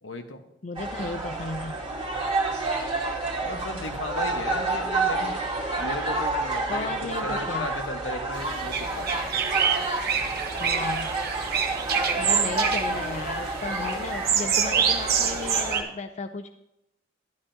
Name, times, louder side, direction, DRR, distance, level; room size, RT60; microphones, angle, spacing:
voice 1, 0.0-0.4 3.4-5.3 5.8-6.9 7.2-9.1, left 2 dB, 75° left, 5 dB, 1.4 m, -36 dB
voice 2, 0.6-1.8 6.7-7.7 10.5-11.1 12.2-16.6, left 3 dB, 40° left, 7 dB, 0.5 m, -34 dB
sound 1, 0.7-15.8, right 2 dB, 30° right, 2.5 m, -29 dB
sound 2, 8.3-15.8, right 7 dB, 55° right, 1.2 m, -27 dB
12.5 x 12.0 x 2.9 m, 0.85 s
head